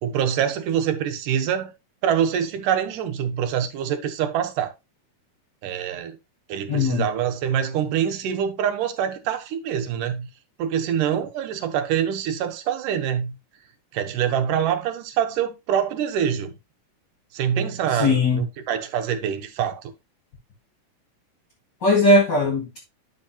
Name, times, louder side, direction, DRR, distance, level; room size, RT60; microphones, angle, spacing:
voice 1, 0.0-1.7 2.0-4.7 5.6-6.2 6.5-10.3 10.6-13.3 13.9-16.6 17.3-19.9, right 9 dB, 85° right, 2.6 m, -25 dB
voice 2, 6.7-7.0 17.9-18.4 21.8-22.8, left 2 dB, 40° left, 2.0 m, -19 dB
11.0 x 5.2 x 2.8 m
omnidirectional pair, 3.6 m